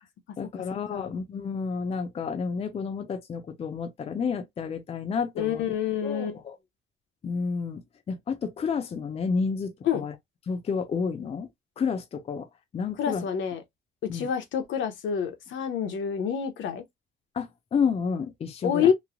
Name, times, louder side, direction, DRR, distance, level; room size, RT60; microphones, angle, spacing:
voice 1, 0.4-5.7 6.0-6.6 7.2-7.8 8.1-10.1 10.5-11.5 11.8-12.5 12.7-13.2 14.1-14.3 17.3-18.9, left 5 dB, 30° left, 0.5 m, -30 dB
voice 2, 5.4-6.4 9.8-10.0 13.0-13.6 14.0-16.8 18.6-18.9, left 8 dB, 70° left, 0.7 m, -27 dB
3.1 x 2.0 x 2.4 m
cardioid pair, 130°, 21 cm